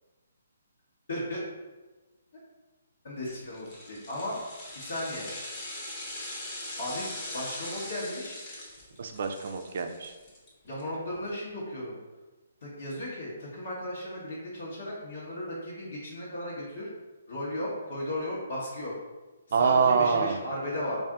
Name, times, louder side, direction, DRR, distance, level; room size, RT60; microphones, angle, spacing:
voice 1, 1.1-1.4 3.0-4.4 4.7-5.3 6.8-7.1 7.3-8.4 10.6-12.0 12.6-16.9 17.3-18.9 19.5-21.0, left 1 dB, 65° left, -7 dB, 1.1 m, -35 dB
sound 1, 3.5-10.8 11.2-11.3, left 1 dB, 30° left, 1.0 m, -41 dB
voice 2, 9.0-10.1 19.5-20.4, right 5 dB, 60° right, 6 dB, 0.4 m, -25 dB
3.4 x 2.5 x 3.5 m, 1.2 s
hypercardioid pair, 145°, 0 cm